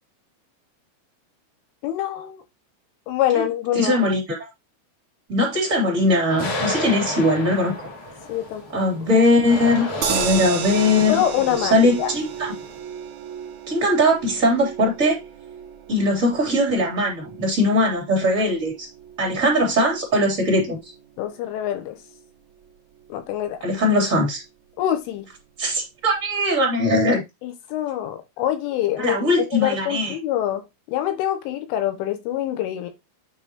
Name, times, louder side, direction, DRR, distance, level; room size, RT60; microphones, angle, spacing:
voice 1, 1.8-2.4 3.1-4.0 8.3-8.6 11.1-12.1 21.2-22.0 23.1-23.6 24.8-25.3 27.4-29.2 29.5-32.9, left 11 dB, 85° left, 3.5 m, -25 dB
voice 2, 3.7-4.5 5.3-7.7 8.7-11.2 11.6-12.5 13.7-15.2 15.9-18.9 19.2-20.8 23.6-24.4 25.6-27.2 29.0-30.1, left 1 dB, 20° right, 2.8 m, -20 dB
sound 1, 6.3-12.8, left 2 dB, 45° left, 2.8 m, -32 dB
sound 2, 10.0-22.2 22.6-22.7 23.0-23.1, right 8 dB, 65° right, 3.0 m, -34 dB
9.0 x 5.4 x 3.1 m
omnidirectional pair, 5.7 m